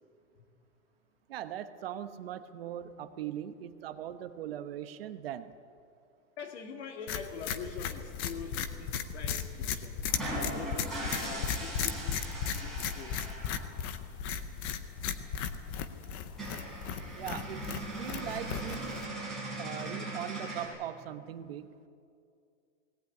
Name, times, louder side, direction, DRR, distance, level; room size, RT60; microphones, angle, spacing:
voice 1, 1.3-5.5 17.1-19.0 19.6-21.9, right 11 dB, 50° right, 10 dB, 1.0 m, -40 dB
voice 2, 6.4-10.0 10.5-12.2 12.6-13.2, left 6 dB, 55° left, 3 dB, 2.8 m, -44 dB
sound 1, 7.1-19.1, left 7 dB, 20° left, 0.5 m, -36 dB
sound 2, 10.1-13.7 15.3-15.4 15.6-15.7 16.1-16.2 16.3-20.7, right 2 dB, ahead, 5.3 m, -39 dB
19.5 x 18.5 x 9.3 m, 2.5 s
supercardioid pair, 175°, 39 cm